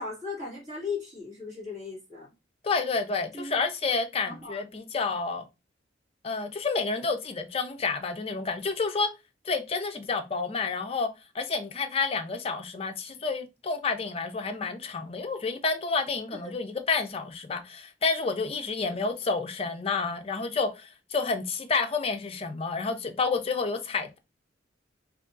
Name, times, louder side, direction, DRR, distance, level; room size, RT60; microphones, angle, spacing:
voice 1, 0.0-2.3 3.3-3.5 4.2-4.6 5.1-5.2 16.4-16.5 18.7-19.0, left 4 dB, 40° right, 1.9 m, -37 dB
voice 2, 2.6-5.4 6.2-9.1 9.4-11.1 11.3-24.2, left 4 dB, 30° left, 0.4 m, -29 dB
3.5 x 2.8 x 2.5 m
head